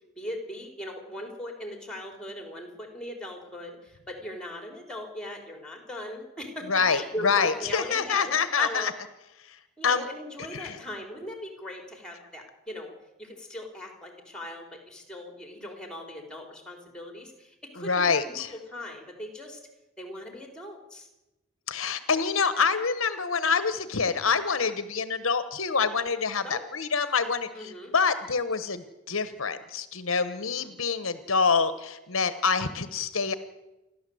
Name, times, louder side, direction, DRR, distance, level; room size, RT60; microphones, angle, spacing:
voice 1, 0.2-8.9 9.8-12.9 13.2-19.6 20.0-21.1 26.4-26.6 27.6-27.9 30.3-30.7, left 1 dB, 5° left, 3 dB, 3.8 m, -39 dB
voice 2, 6.7-8.9 9.4-10.0 10.5-10.8 17.8-18.5 21.7-33.3, left 5 dB, 65° left, 12 dB, 1.1 m, -26 dB
28.5 x 12.0 x 7.8 m, 0.99 s
head